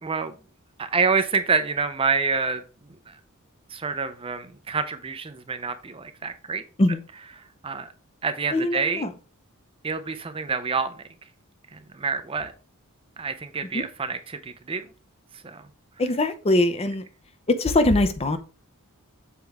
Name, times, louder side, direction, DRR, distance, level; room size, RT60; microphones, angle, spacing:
voice 1, 0.0-0.3 0.8-2.6 3.1-3.2 3.7-6.6 7.6-7.9 8.2-9.1 9.8-11.0 11.7-12.5 13.2-14.8 15.4-15.6, right 4 dB, 25° right, 0.5 m, -27 dB
voice 2, 8.5-9.1 13.7-13.8 16.0-17.0 17.5-18.4, left 2 dB, 25° left, 0.6 m, -22 dB
7.2 x 4.5 x 3.5 m
head